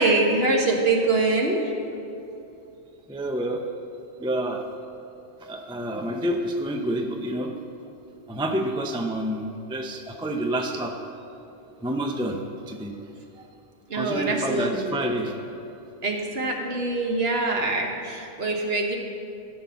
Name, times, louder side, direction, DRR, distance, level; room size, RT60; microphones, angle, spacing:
voice 1, 0.0-1.7 13.9-15.0 16.0-19.0, right 2 dB, 50° right, 1 dB, 1.5 m, -24 dB
voice 2, 3.1-3.6 4.2-4.6 5.5-7.5 8.3-10.9 11.8-12.4 12.7-12.9 13.9-15.3, right 1 dB, 5° right, 3 dB, 0.4 m, -28 dB
13.0 x 5.9 x 6.9 m, 2.8 s
omnidirectional pair, 1.3 m